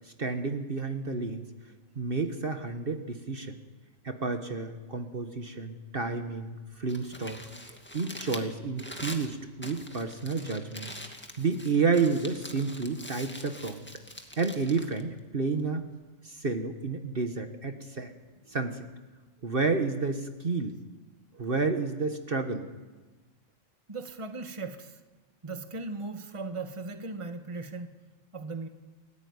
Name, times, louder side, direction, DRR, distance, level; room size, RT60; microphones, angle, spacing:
voice 1, 0.2-1.4 1.9-3.6 4.0-7.4 7.9-10.9 11.4-13.9 14.4-15.8 16.2-18.1 18.5-18.8 19.4-20.8 21.3-22.7, right 4 dB, 45° right, 6 dB, 1.5 m, -30 dB
Crumpling crinkling, 6.8-15.8, equal, 10° left, 2.0 m, -44 dB
voice 2, 23.9-25.0 25.4-28.0 28.3-28.7, right 3 dB, 25° right, 7 dB, 1.5 m, -38 dB
29.5 x 14.5 x 9.7 m, 1.3 s
omnidirectional pair, 1.3 m